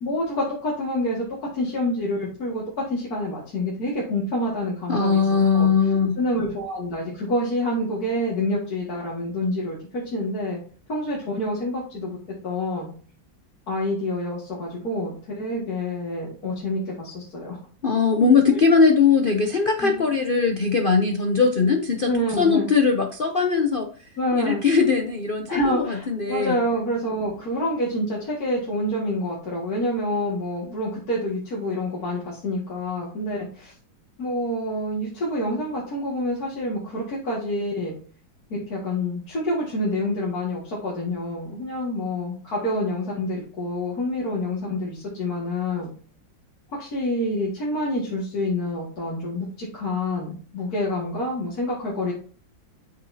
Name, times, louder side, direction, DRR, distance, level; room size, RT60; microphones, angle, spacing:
voice 1, 0.0-1.3 1.5-5.7 6.2-10.6 10.9-12.2 12.4-12.9 13.7-17.6 18.5-18.6 19.8-20.0 22.0-22.7 24.2-24.6 25.5-33.7 34.2-38.0 38.5-45.9 46.7-52.1, left 1 dB, 50° left, -5 dB, 2.4 m, -27 dB
voice 2, 4.9-6.2 17.8-22.1 22.4-23.9 24.3-26.6, left 5 dB, 75° left, 4 dB, 0.5 m, -20 dB
8.5 x 6.8 x 2.7 m, 0.41 s
omnidirectional pair, 2.1 m